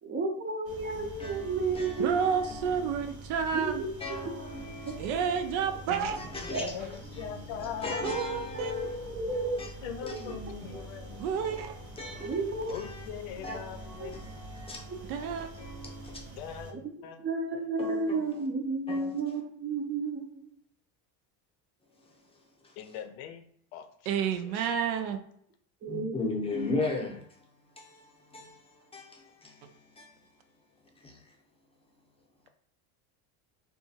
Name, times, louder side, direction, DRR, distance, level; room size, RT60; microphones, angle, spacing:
voice 1, 0.0-2.1 3.5-4.2 6.5-6.7 7.9-8.0 8.5-9.6 10.1-10.3 12.2-12.7 13.4-13.5 14.9-15.0 16.7-16.8 17.2-20.5 25.8-26.1 26.5-26.7, right 3 dB, 30° right, 0.5 m, -32 dB
sound 1, 0.6-16.7, right 2 dB, 60° right, 1.0 m, -46 dB
voice 2, 1.2-2.8 4.0-5.8 6.1-6.7 7.1-7.4 7.8-9.7 10.1-12.4 12.8-13.0 13.4-16.3 17.8-18.4 18.9-19.1 25.9-27.4 27.8-30.1 31.0-31.2, left 3 dB, 15° left, 0.6 m, -39 dB
voice 3, 2.0-3.8 5.0-6.2 8.0-8.7 11.2-11.7 15.1-15.5 24.1-25.2, right 7 dB, 80° right, 0.6 m, -30 dB
voice 4, 6.5-8.1 9.8-11.2 12.7-14.2 16.4-17.2 17.5-17.7 22.7-23.4 23.7-24.7, left 8 dB, 80° left, 0.6 m, -41 dB
2.7 x 2.4 x 2.7 m
cardioid pair, 125°, 43 cm